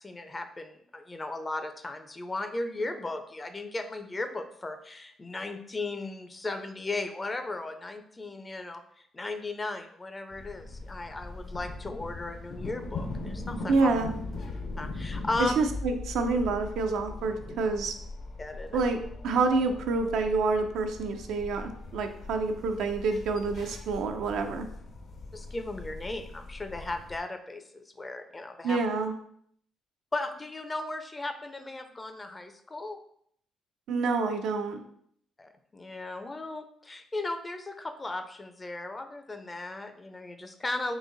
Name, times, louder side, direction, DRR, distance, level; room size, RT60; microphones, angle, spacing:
voice 1, 0.0-13.9 14.8-15.6 18.4-18.9 25.3-28.8 30.1-33.0 35.4-41.0, left 2 dB, 25° left, 8 dB, 0.5 m, -36 dB
sound 1, 10.3-27.2, left 2 dB, 60° left, 0.7 m, -40 dB
voice 2, 13.7-14.1 15.4-17.9 18.7-19.0 19.2-24.7 28.6-29.1 33.9-34.8, right 3 dB, 80° right, 5 dB, 0.5 m, -27 dB
3.9 x 2.6 x 3.8 m, 0.66 s
cardioid pair, 90°, 0 cm